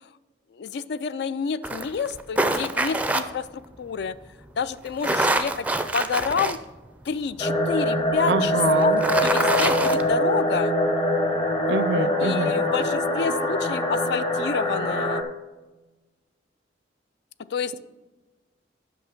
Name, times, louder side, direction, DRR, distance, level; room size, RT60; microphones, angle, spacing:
voice 1, 0.6-3.5 3.8-4.2 4.6-5.7 5.9-6.6 7.1-10.7 12.2-15.2 17.5-17.7, left 6 dB, 60° left, 15 dB, 0.3 m, -29 dB
sound 1, 1.6-3.2 4.9-6.6 7.1-7.2 8.8-10.0, right 2 dB, 10° right, 0.4 m, -25 dB
sound 2, 7.4-15.2, left 1 dB, 30° left, 0.8 m, -23 dB
voice 2, 8.3-9.0 11.7-12.5, right 3 dB, 65° right, 13 dB, 0.5 m, -25 dB
8.2 x 6.1 x 5.1 m, 1.2 s
head